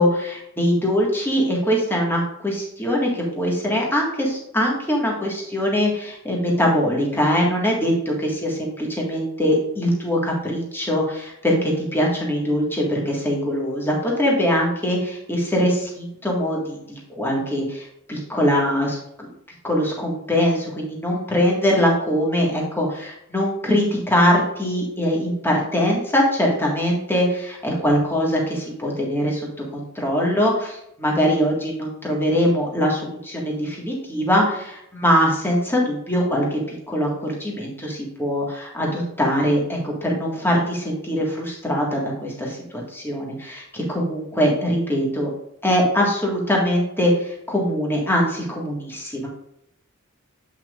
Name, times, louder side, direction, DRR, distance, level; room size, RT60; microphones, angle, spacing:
voice 1, 0.0-19.3 19.6-29.4 29.7-45.3 45.6-49.3, equal, 10° left, -2 dB, 1.8 m, -22 dB
8.4 x 5.8 x 2.5 m, 0.78 s
head